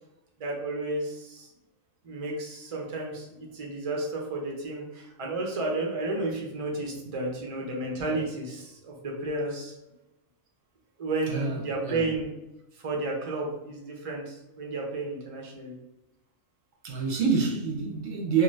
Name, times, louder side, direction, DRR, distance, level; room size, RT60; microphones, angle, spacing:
voice 1, 0.4-1.5 2.0-9.7 11.0-12.3 12.7-15.7, right 2 dB, 45° right, 0.4 m, -32 dB
voice 2, 11.3-12.0 16.8-18.4, right 5 dB, 65° right, 0.8 m, -27 dB
2.6 x 2.4 x 3.1 m
omnidirectional pair, 1.4 m